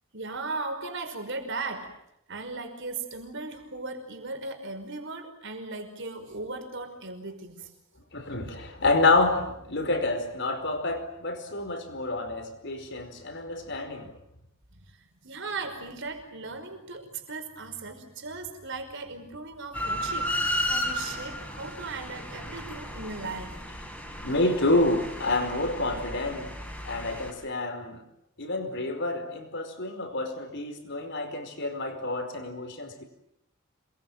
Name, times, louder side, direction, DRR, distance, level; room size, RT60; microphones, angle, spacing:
voice 1, 0.1-1.9 2.3-7.7 14.9-23.6, right 3 dB, 55° right, 5.3 m, -37 dB
voice 2, 8.1-14.1 24.2-26.5 26.8-28.0 28.4-33.0, left 2 dB, 55° left, 4.9 m, -28 dB
sound 1, 19.7-27.3, left 1 dB, 5° left, 5.1 m, -34 dB
28.0 x 22.0 x 9.3 m
head